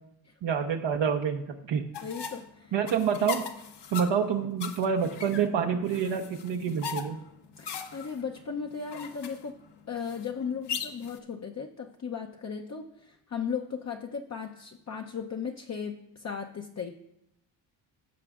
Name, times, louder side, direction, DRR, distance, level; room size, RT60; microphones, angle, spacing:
voice 1, 0.4-1.8 2.7-3.4 3.9-7.2, right 7 dB, 65° right, 3 dB, 0.9 m, -27 dB
sound 1, 1.9-11.2, left 7 dB, 60° left, 1.1 m, -40 dB
voice 2, 2.0-2.7 7.6-9.5 9.9-17.0, left 6 dB, 35° left, 3 dB, 0.7 m, -36 dB
16.5 x 6.8 x 2.4 m, 0.82 s
cardioid pair, 65°, 47 cm